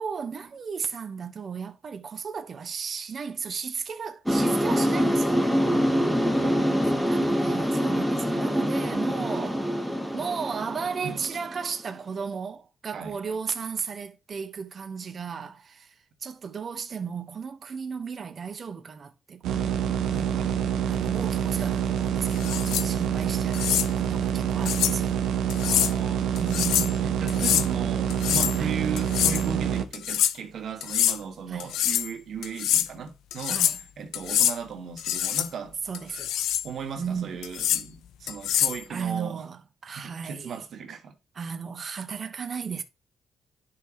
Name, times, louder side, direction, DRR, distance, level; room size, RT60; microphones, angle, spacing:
voice 1, 0.0-5.5 7.0-9.6 10.1-15.9 16.2-20.5 20.9-25.2 26.4-27.2 28.5-28.8 31.5-31.7 33.5-33.8 35.9-36.3 37.0-37.4 38.9-40.6 41.3-42.8, right 6 dB, 45° right, 1.3 m, -35 dB
sound 1, 4.3-11.9, equal, ahead, 2.1 m, -25 dB
voice 2, 5.7-7.0 11.0-11.2 12.9-13.2 20.1-20.6 25.6-26.4 27.0-33.6 34.0-35.8 36.6-39.4 39.9-41.1, right 6 dB, 60° right, 2.3 m, -37 dB
sound 2, 19.4-29.8, right 9 dB, 85° right, 1.1 m, -26 dB
sound 3, 22.3-22.9 23.5-23.9 24.7-25.0 25.5-25.9 26.4-26.9 27.3-27.7 28.1-28.6 29.0-29.4 29.9-30.3 30.8-31.2 31.6-32.1 32.4-32.9 33.3-33.8 34.1-34.6 35.0-35.5 35.9-36.7 37.4-37.8 38.3-38.8, left 11 dB, 85° left, 0.6 m, -25 dB
11.0 x 5.9 x 3.1 m
cardioid pair, 90°, 0 cm